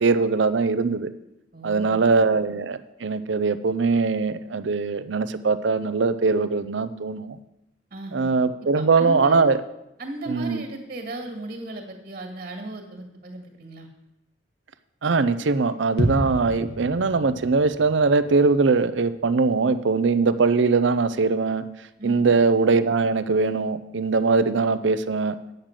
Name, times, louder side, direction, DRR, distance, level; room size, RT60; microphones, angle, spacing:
voice 1, 0.0-1.1 1.6-7.4 8.1-9.6 10.3-10.6 15.0-21.6 22.0-25.4, right 4 dB, 70° right, 13 dB, 0.6 m, -21 dB
voice 2, 1.5-2.0 7.9-8.3 8.7-9.5 10.0-13.9 22.0-22.2, right 2 dB, 45° right, 4 dB, 2.0 m, -36 dB
sound 1, 16.0-19.9 20.2-20.3, equal, 60° left, 1.4 m, -32 dB
8.9 x 6.6 x 7.5 m, 0.89 s
head